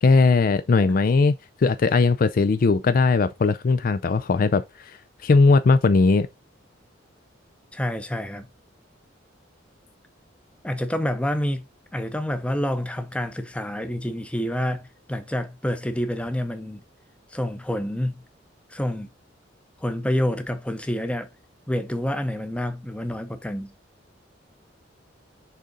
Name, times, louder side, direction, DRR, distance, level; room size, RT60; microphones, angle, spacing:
voice 1, 0.0-5.0 5.2-6.3, left 3 dB, 45° left, 0.4 m, -19 dB
voice 2, 7.7-8.5 10.6-11.7 11.9-16.8 17.3-18.2 18.7-19.1 19.8-21.3 21.7-23.7, left 1 dB, 5° left, 0.7 m, -28 dB
6.7 x 3.7 x 3.9 m
head